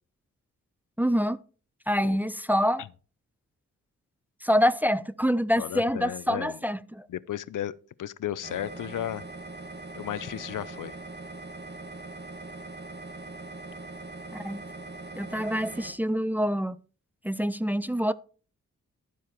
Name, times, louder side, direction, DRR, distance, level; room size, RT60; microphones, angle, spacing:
voice 1, 1.0-1.4 1.9-2.8 4.4-7.1 14.4-14.6 15.2-16.8 17.2-18.1, equal, 5° right, 0.4 m, -26 dB
voice 2, 5.6-6.5 7.1-7.7 8.0-9.2 9.9-11.0, left 11 dB, 85° left, 0.6 m, -34 dB
sound 1, 8.4-15.9, right 2 dB, 35° right, 1.7 m, -41 dB
11.5 x 7.6 x 4.4 m
wide cardioid pair, 100°, 31 cm